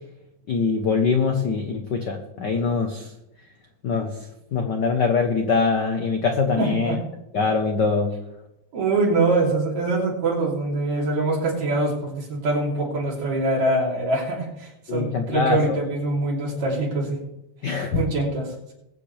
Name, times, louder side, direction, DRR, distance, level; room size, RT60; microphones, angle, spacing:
voice 1, 0.5-3.1 3.8-4.2 4.5-6.9 7.3-8.1 14.9-15.8 17.6-18.0, left 4 dB, 80° left, 4 dB, 0.9 m, -23 dB
voice 2, 6.6-7.0 8.7-17.2 17.9-18.7, right 2 dB, 65° right, -2 dB, 4.4 m, -24 dB
21.0 x 8.9 x 3.3 m, 0.88 s
omnidirectional pair, 3.4 m